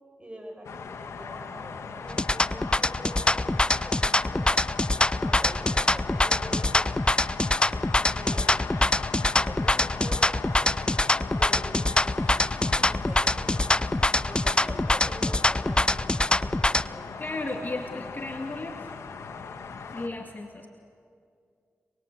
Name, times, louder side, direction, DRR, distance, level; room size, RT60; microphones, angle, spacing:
voice 1, 0.2-3.5 3.8-4.5 5.2-6.9 8.2-8.6 9.4-10.8 11.4-11.7 12.8-13.8 14.2-17.0 17.8-18.1, right 1 dB, 25° right, 2 dB, 7.1 m, -44 dB
sound 1, 0.6-20.1, left 5 dB, 85° left, 1.7 m, -38 dB
sound 2, 2.1-16.9, left 2 dB, 20° left, 0.6 m, -24 dB
voice 2, 17.2-18.9 19.8-20.7, left 2 dB, 40° left, 2 dB, 2.3 m, -34 dB
28.5 x 21.5 x 8.4 m, 2.3 s
cardioid pair, 40°, 5 cm